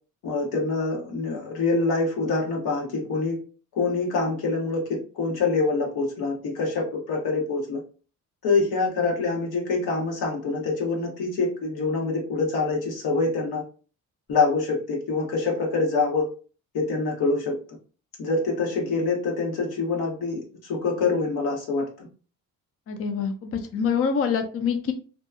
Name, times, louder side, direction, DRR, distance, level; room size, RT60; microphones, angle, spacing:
voice 1, 0.2-3.4 3.7-7.8 8.4-13.6 14.3-16.3 16.7-17.6 18.2-22.1, left 3 dB, 80° left, 0 dB, 1.0 m, -25 dB
voice 2, 22.9-24.9, left 6 dB, 40° left, 6 dB, 0.4 m, -25 dB
2.7 x 2.2 x 2.4 m, 0.37 s
cardioid pair, 70°, 37 cm